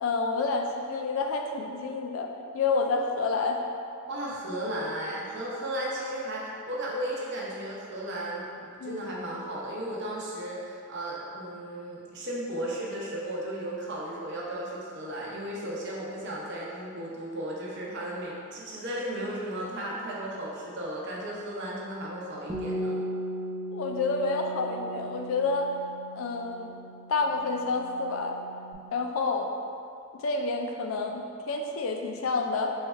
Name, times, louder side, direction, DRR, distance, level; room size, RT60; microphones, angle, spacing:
voice 1, 0.0-3.6 8.8-9.0 23.7-25.7 26.2-26.7 27.1-28.4 28.9-29.5 30.2-32.7, left 3 dB, 75° left, 3 dB, 0.4 m, -29 dB
voice 2, 4.1-22.9, right 1 dB, 60° right, -4 dB, 0.7 m, -35 dB
Bass guitar, 22.5-28.7, right 1 dB, 15° right, 0.5 m, -37 dB
3.2 x 2.3 x 4.2 m, 2.4 s
head